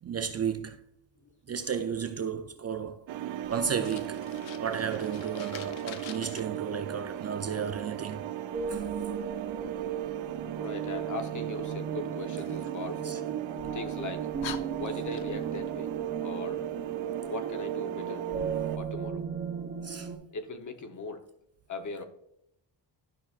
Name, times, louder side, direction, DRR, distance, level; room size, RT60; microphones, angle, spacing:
voice 1, 0.0-0.8 1.5-3.1 3.5-4.3 4.6-8.3 8.7-8.9 13.0-13.2 19.8-20.1, right 7 dB, 35° right, 0.5 m, -33 dB
sound 1, 3.1-18.8, right 11 dB, 80° right, 0.6 m, -36 dB
Fire, 3.4-6.4 12.3-13.6 14.0-14.1 14.4-15.6, left 9 dB, 75° left, 0.8 m, -45 dB
sound 2, 8.5-20.1, right 5 dB, 20° right, 2.5 m, -38 dB
voice 2, 10.6-13.2 13.7-14.3 14.7-15.9 16.2-16.7 17.3-19.2 20.3-21.2 21.7-22.0, left 3 dB, 40° left, 1.0 m, -39 dB
12.0 x 5.9 x 2.4 m
cardioid pair, 145°, 46 cm